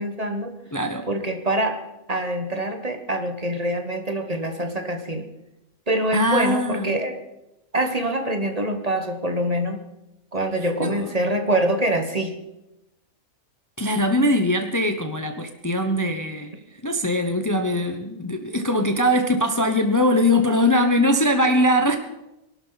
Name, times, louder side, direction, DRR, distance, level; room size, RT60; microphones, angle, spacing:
voice 1, 0.0-0.5 1.1-1.8 2.1-5.2 5.9-7.2 7.7-9.8 10.3-12.4, right 1 dB, 30° right, 5 dB, 1.5 m, -25 dB
voice 2, 0.7-1.1 6.1-7.0 10.8-11.1 13.8-22.0, left 1 dB, 15° left, 5 dB, 1.0 m, -21 dB
22.5 x 12.0 x 4.1 m, 0.93 s
omnidirectional pair, 1.3 m